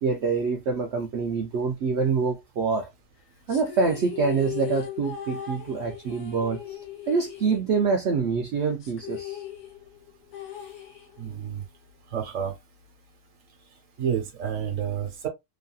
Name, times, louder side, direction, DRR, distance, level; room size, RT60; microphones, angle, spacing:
voice 1, 0.0-2.9 3.5-6.8 7.1-9.4, right 5 dB, 90° right, 0.5 m, -26 dB
sound 1, 3.5-8.2 8.4-8.5 8.8-11.5, left 10 dB, 70° left, 1.3 m, -38 dB
voice 2, 11.2-11.6 12.1-12.5 14.0-15.3, right 8 dB, 55° right, 1.2 m, -29 dB
3.0 x 2.6 x 2.3 m
omnidirectional pair, 1.7 m